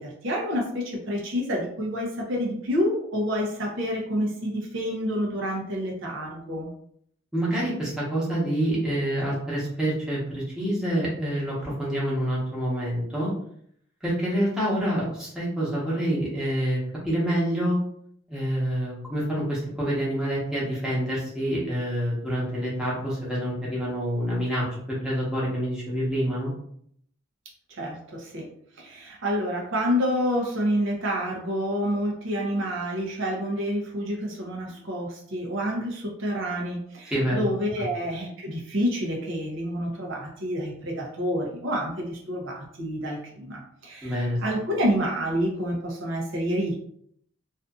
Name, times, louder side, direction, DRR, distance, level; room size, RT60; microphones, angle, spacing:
voice 1, 0.0-6.7 27.7-28.5 28.8-46.8, equal, 65° right, -1 dB, 0.6 m, -28 dB
voice 2, 7.3-13.3 14.0-17.8 18.3-26.5 37.1-37.4 44.0-44.4, equal, 5° right, -8 dB, 0.9 m, -27 dB
2.6 x 2.4 x 2.3 m, 0.67 s
head